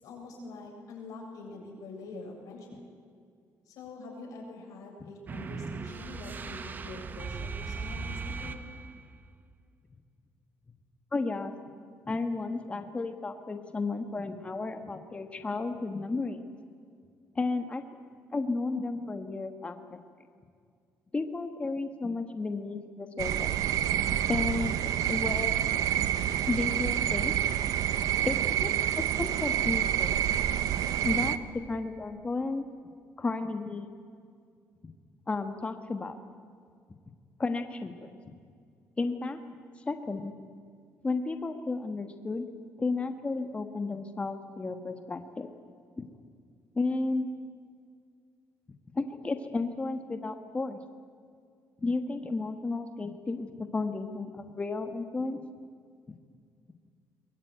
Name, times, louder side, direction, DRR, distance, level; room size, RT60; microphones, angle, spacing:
voice 1, 0.0-2.8 3.7-8.6, left 3 dB, 75° left, 0 dB, 7.2 m, -45 dB
sound 1, 5.3-9.1, right 4 dB, 30° right, 1.0 m, -38 dB
voice 2, 11.1-11.5 12.1-16.4 17.3-17.8 18.3-20.0 21.1-23.6 24.3-24.8 25.1-25.8 26.5-27.3 28.2-28.9 29.2-30.2 31.0-32.6 33.2-33.9 35.3-36.2 37.4-38.4 39.0-39.4 39.8-40.3 41.0-42.5 42.8-45.5 46.0-46.1 46.7-47.3 48.9-50.8 51.8-55.4, left 3 dB, 20° left, 7 dB, 1.4 m, -33 dB
sound 2, 23.2-31.4, right 11 dB, 80° right, 0.9 m, -28 dB
22.5 x 21.0 x 9.2 m, 2.2 s
cardioid pair, 130°, 6 cm